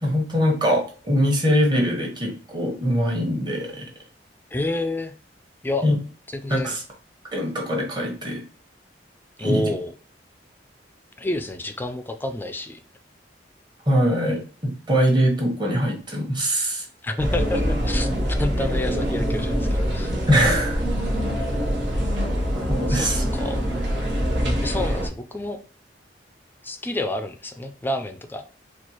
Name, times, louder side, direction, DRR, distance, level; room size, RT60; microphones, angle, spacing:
voice 1, 0.0-3.9 5.8-5.9 6.5-6.8 7.3-8.4 9.4-9.7 13.9-16.8 20.3-20.8 22.7-23.2, equal, 25° right, -1 dB, 1.1 m, -22 dB
voice 2, 4.5-5.1 5.6-5.8 6.4-6.8 9.4-9.9 11.2-12.8 17.0-20.1 22.9-23.1 23.3-23.6 24.6-25.6 26.6-28.5, left 2 dB, 10° left, 8 dB, 0.3 m, -29 dB
sound 1, 17.2-25.1, equal, 90° right, 1.1 m, -24 dB
4.3 x 2.3 x 2.9 m, 0.38 s
head